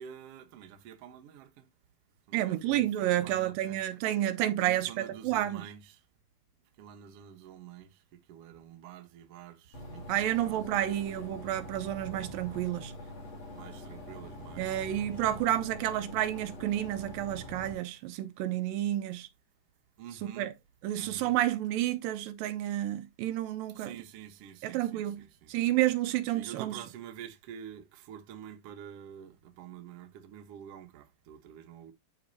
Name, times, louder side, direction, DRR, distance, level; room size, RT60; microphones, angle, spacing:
voice 1, 0.0-1.6 2.3-3.8 4.6-6.0 6.8-11.0 13.5-15.2 20.0-20.5 20.9-21.4 23.7-25.7 26.3-31.9, right 9 dB, 65° right, 1.6 m, -48 dB
voice 2, 2.3-5.7 10.1-12.9 14.6-19.3 20.2-20.5 20.8-23.9 24.6-25.2 25.5-26.8, right 13 dB, 85° right, 2.3 m, -30 dB
sound 1, 9.7-17.7, left 1 dB, 50° left, 4.2 m, -45 dB
11.5 x 4.3 x 2.7 m
omnidirectional pair, 4.1 m